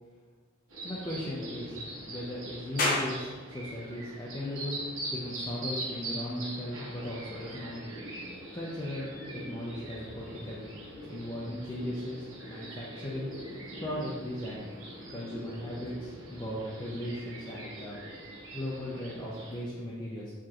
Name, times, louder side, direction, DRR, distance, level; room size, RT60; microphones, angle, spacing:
sound 1, 0.7-19.6, right 1 dB, 70° right, 1.5 m, -42 dB
voice 1, 0.8-1.8 2.1-7.8 8.5-9.1 9.3-10.7 11.0-13.3 13.6-14.7 15.1-18.0 18.5-20.3, left 1 dB, 20° left, -6 dB, 0.5 m, -37 dB
sound 2, 2.8-15.9, left 2 dB, 45° left, 0.9 m, -42 dB
4.8 x 3.6 x 2.9 m, 1.4 s
head